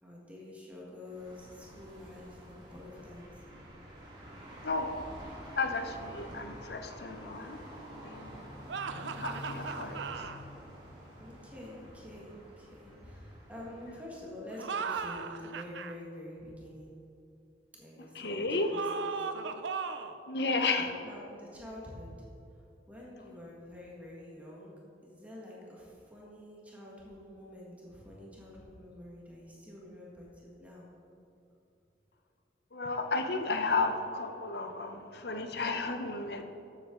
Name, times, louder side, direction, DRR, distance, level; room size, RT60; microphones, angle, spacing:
voice 1, 0.0-3.4 6.6-6.7 11.1-16.9 17.7-19.3 19.7-19.9 20.7-22.1 22.5-24.7 25.0-30.9, left 1 dB, 10° right, -5 dB, 1.6 m, -48 dB
sound 1, 1.0-14.3, equal, 25° right, 1.8 m, -48 dB
voice 2, 5.2-7.7 8.0-8.5 9.0-10.3 18.1-18.7 20.3-21.0 32.7-36.4, left 3 dB, 60° left, 6 dB, 0.8 m, -33 dB
sound 2, 8.7-10.4 14.5-15.9 18.7-20.2, right 5 dB, 85° right, 0.5 m, -37 dB
12.5 x 7.7 x 3.8 m, 2.7 s
head